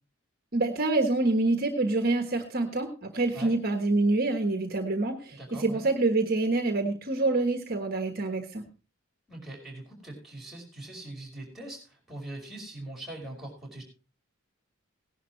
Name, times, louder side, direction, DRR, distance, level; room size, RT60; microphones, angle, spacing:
voice 1, 0.5-8.7, right 2 dB, 45° right, 6 dB, 1.3 m, -26 dB
voice 2, 5.3-5.8 9.3-13.8, right 1 dB, ahead, -3 dB, 5.2 m, -42 dB
17.5 x 11.0 x 3.1 m, 0.33 s
head